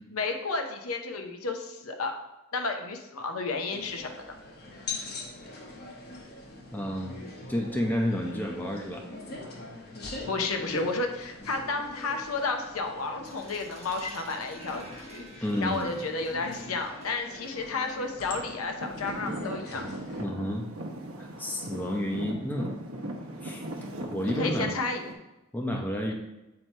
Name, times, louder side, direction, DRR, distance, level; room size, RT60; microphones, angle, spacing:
voice 1, 0.1-2.1 2.5-4.1 10.3-19.8 24.2-25.0, left 3 dB, 85° left, 4 dB, 0.8 m, -32 dB
sound 1, 3.7-20.2, left 2 dB, 50° left, 1.0 m, -42 dB
voice 2, 6.7-7.2 7.5-9.0 15.4-15.9 20.2-20.7 21.2-22.7 23.4-23.6 24.1-24.8 25.5-26.1, equal, 10° left, 0 dB, 0.6 m, -30 dB
sound 2, 13.2-18.8, right 4 dB, 30° right, 1.0 m, -52 dB
Traffic noise roadway noise / Engine, 18.8-25.1, right 1 dB, 75° right, 0.9 m, -38 dB
7.6 x 2.9 x 4.4 m, 0.97 s
head